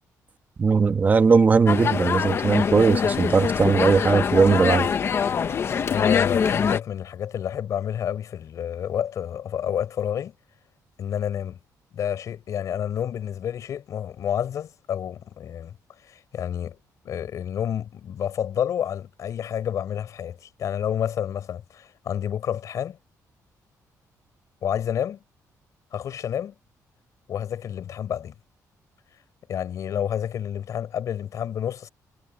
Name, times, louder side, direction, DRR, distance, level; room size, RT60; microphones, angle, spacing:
voice 1, 0.6-4.9, right 5 dB, 25° right, 1.4 m, -19 dB
sound 1, 1.7-6.8, left 6 dB, 40° left, 0.9 m, -24 dB
voice 2, 5.9-10.3 11.0-11.6 11.9-15.7 16.1-16.8 17.0-23.0 24.6-25.2 25.9-26.5 27.3-28.3 29.5-31.9, left 9 dB, 55° left, 4.3 m, -29 dB
cardioid pair, 165°, 7 cm